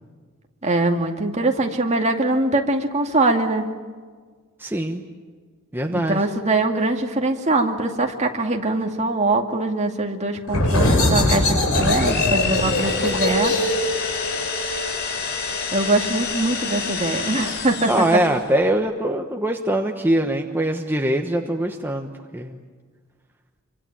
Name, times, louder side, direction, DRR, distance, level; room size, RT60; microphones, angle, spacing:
voice 1, 0.6-3.7 5.9-13.5 15.7-17.9, right 2 dB, 30° right, 3 dB, 2.3 m, -22 dB
voice 2, 4.6-5.0 5.7-6.3 17.9-22.6, right 1 dB, 10° right, 3 dB, 1.2 m, -22 dB
sound 1, 10.5-15.9, left 1 dB, 90° left, 6.4 m, -22 dB
sound 2, 11.7-18.4, left 5 dB, 55° left, 4.0 m, -28 dB
25.5 x 25.0 x 8.9 m, 1.6 s
head